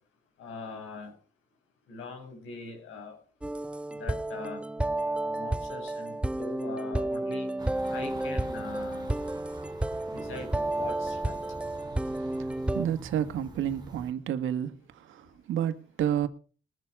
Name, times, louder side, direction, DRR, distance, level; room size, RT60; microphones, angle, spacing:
voice 1, 0.4-1.1 1.9-3.2 3.9-4.6 5.2-7.5 7.9-9.1 10.1-11.4, left 4 dB, 80° left, 6.1 m, -42 dB
sound 1, 3.4-12.9, right 1 dB, 5° right, 0.6 m, -31 dB
sound 2, 7.6-14.1, right 3 dB, 20° right, 3.2 m, -45 dB
voice 2, 12.7-16.3, right 10 dB, 80° right, 1.7 m, -30 dB
21.5 x 7.3 x 4.9 m
cardioid pair, 90°, 20 cm